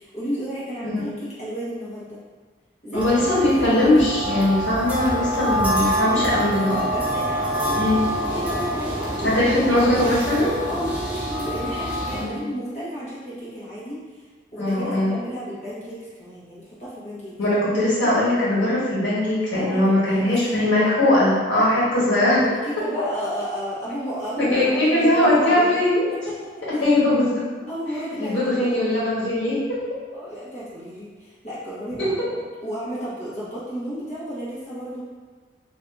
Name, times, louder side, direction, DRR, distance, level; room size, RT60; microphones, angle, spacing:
voice 1, 0.0-2.2 2.8-4.0 5.9-8.0 8.3-10.1 10.7-14.0 14.5-17.3 19.5-20.6 22.2-25.8 26.2-26.8 27.7-28.9 30.1-35.1, equal, 35° left, -9 dB, 1.1 m, -32 dB
voice 2, 2.9-6.8 7.7-8.0 9.2-10.5 12.1-12.4 14.6-15.1 17.4-22.4 24.4-26.0 26.8-27.4 28.2-29.6 32.0-32.1, left 1 dB, 85° left, -8 dB, 1.3 m, -20 dB
sound 1, 2.9-12.2, equal, 10° right, 0.4 m, -26 dB
2.7 x 2.7 x 3.4 m, 1.5 s
head